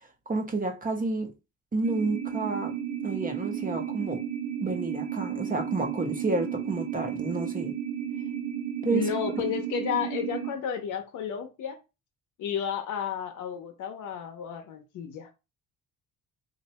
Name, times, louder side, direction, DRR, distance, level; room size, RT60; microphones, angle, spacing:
voice 1, 0.3-1.3 1.7-2.8 3.0-4.2 4.6-7.7 8.8-9.1, right 3 dB, 30° right, 1.0 m, -30 dB
sound 1, 1.8-10.5, right 9 dB, 70° right, 0.6 m, -33 dB
voice 2, 8.9-11.8 12.4-15.3, left 8 dB, 80° left, 0.9 m, -32 dB
3.2 x 2.6 x 4.2 m
cardioid pair, 90°, 30 cm